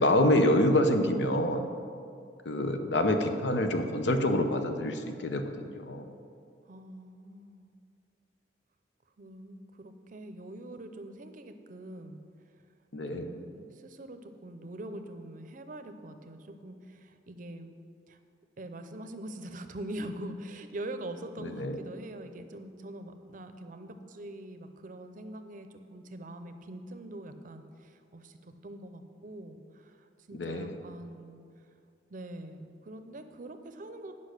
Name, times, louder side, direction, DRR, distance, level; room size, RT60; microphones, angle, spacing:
voice 1, 0.0-1.7 2.4-6.1 12.9-13.3 21.4-21.8 30.3-30.8, left 1 dB, 75° left, 7 dB, 0.7 m, -27 dB
voice 2, 6.7-7.7 9.2-12.2 13.1-17.7 18.1-18.2 18.6-31.4 32.1-34.2, right 1 dB, 45° right, 8 dB, 0.5 m, -43 dB
8.5 x 5.5 x 6.4 m, 2.4 s
head